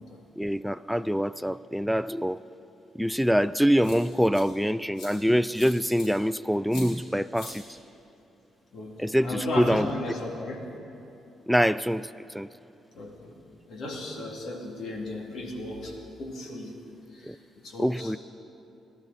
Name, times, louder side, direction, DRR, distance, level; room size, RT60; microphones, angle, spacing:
voice 1, 0.4-2.4 3.0-7.6 9.0-9.9 11.5-12.5 17.2-17.4 17.8-18.2, equal, ahead, 14 dB, 0.3 m, -25 dB
sound 1, 3.1-3.2 3.8-4.4 4.9-5.1 5.5-6.1 6.7-6.9 7.3-7.5, left 3 dB, 85° left, 4.5 m, -43 dB
voice 2, 8.7-10.6 12.9-13.3 13.7-15.9 16.2-16.8 17.1-17.4 17.6-18.1, left 1 dB, 65° left, 0 dB, 2.7 m, -35 dB
27.0 x 12.0 x 4.1 m, 2.8 s
cardioid pair, 90°, 0 cm